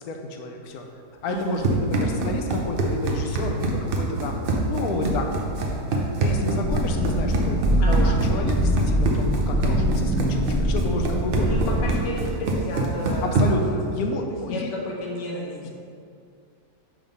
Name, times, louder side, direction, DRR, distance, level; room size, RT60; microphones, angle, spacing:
voice 1, 0.1-0.8 1.2-5.5 6.2-7.6 7.9-11.5 13.4-14.7 15.6-15.7, left 2 dB, 70° left, 3 dB, 1.0 m, -30 dB
voice 2, 1.3-1.7 7.8-8.2 11.4-13.6 14.5-15.7, left 1 dB, 85° left, -3 dB, 1.6 m, -32 dB
Run, 1.3-13.7, right 2 dB, 75° right, 0.5 m, -26 dB
sound 1, 6.6-12.1, equal, ahead, 0.6 m, -23 dB
6.1 x 3.6 x 5.2 m, 2.4 s
omnidirectional pair, 1.8 m